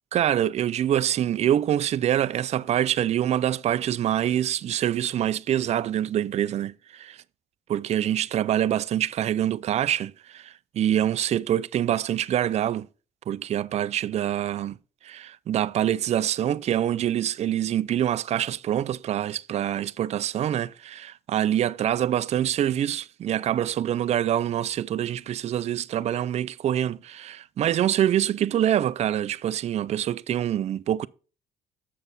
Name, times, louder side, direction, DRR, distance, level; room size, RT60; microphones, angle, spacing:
voice 1, 0.1-7.2 7.7-12.9 13.3-14.8 15.0-31.1, right 11 dB, 40° right, 0.4 m, -25 dB
7.0 x 6.7 x 4.0 m
cardioid pair, 110°, 17 cm